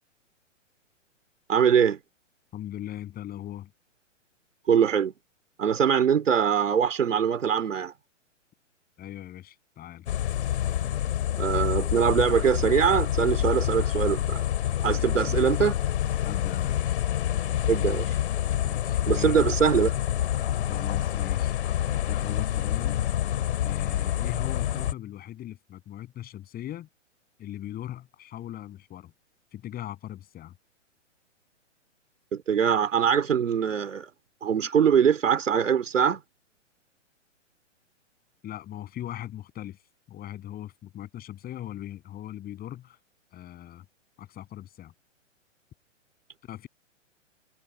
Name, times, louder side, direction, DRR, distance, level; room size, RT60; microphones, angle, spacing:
voice 1, 1.5-2.0 4.7-5.1 5.6-7.9 11.4-14.4 14.8-15.7 17.7-18.2 19.1-19.9 32.3-34.1 34.4-36.2, right 7 dB, 75° right, 3.2 m, -23 dB
voice 2, 2.5-3.7 9.0-10.1 14.9-15.2 16.2-17.0 18.7-19.5 20.7-21.6 21.8-23.0 23.6-26.9 27.4-29.1 29.5-30.5 38.4-39.8 40.1-43.0 43.3-43.8 44.2-44.9 46.5-46.7, left 12 dB, 25° left, 7.7 m, -39 dB
sound 1, 10.1-24.9, left 11 dB, 60° left, 2.9 m, -27 dB
hypercardioid pair, 120°, 38 cm